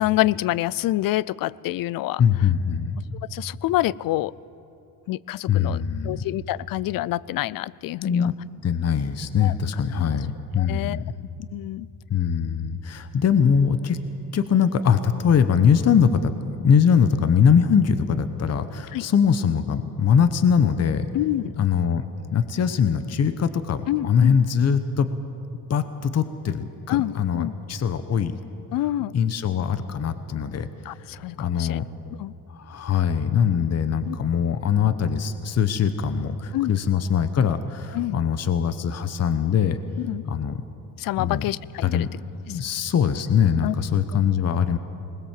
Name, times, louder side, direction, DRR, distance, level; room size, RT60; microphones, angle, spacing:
voice 1, 0.0-2.2 3.3-4.3 5.1-5.8 6.0-8.3 9.4-9.5 10.6-11.0 11.4-11.9 18.9-19.0 21.1-21.5 23.9-24.3 26.9-27.5 28.7-29.1 30.9-31.8 32.2-32.3 34.1-34.2 36.5-36.7 37.9-38.2 40.0-40.2 41.0-42.1 43.6-43.7, left 15 dB, 65° left, 23 dB, 0.5 m, -26 dB
voice 2, 2.2-3.0 5.5-6.2 8.0-8.3 8.6-11.1 12.1-14.0 14.3-16.3 16.6-21.1 21.5-22.0 22.3-25.1 25.7-28.4 29.1-31.0 31.4-31.8 32.5-39.8 40.2-40.6 41.2-41.4 41.8-44.8, left 7 dB, 40° left, 11 dB, 1.0 m, -22 dB
20.5 x 20.0 x 7.5 m, 2.7 s
cardioid pair, 105°, 38 cm